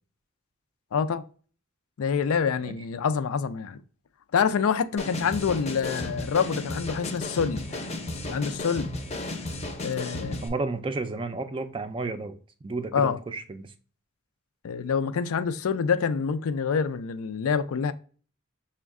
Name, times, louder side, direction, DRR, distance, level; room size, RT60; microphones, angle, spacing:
voice 1, 0.9-1.2 2.0-3.8 4.3-7.8 8.3-8.9 9.8-10.4 12.9-13.2 14.6-17.9, left 6 dB, 85° left, 0.4 m, -26 dB
sound 1, 5.0-10.5, left 2 dB, 30° left, 0.6 m, -34 dB
voice 2, 10.4-12.4 12.6-13.7, right 3 dB, 25° right, 0.3 m, -32 dB
6.0 x 2.2 x 3.5 m
head